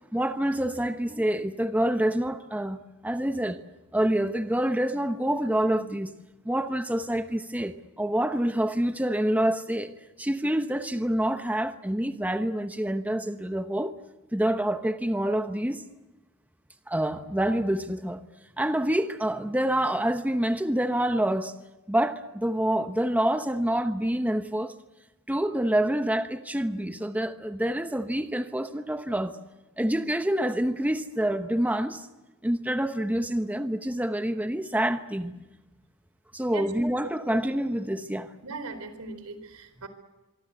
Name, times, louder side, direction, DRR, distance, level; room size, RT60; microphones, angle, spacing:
voice 1, 0.1-2.8 3.0-3.6 3.9-6.1 6.4-9.9 10.2-13.9 14.3-15.8 16.9-18.2 18.6-21.5 21.9-24.7 25.3-29.4 29.8-32.1 32.4-35.4 36.3-38.3, right 1 dB, 5° right, 0.9 m, -27 dB
voice 2, 38.4-39.9, right 3 dB, 85° right, 4.1 m, -39 dB
25.0 x 24.0 x 7.9 m
head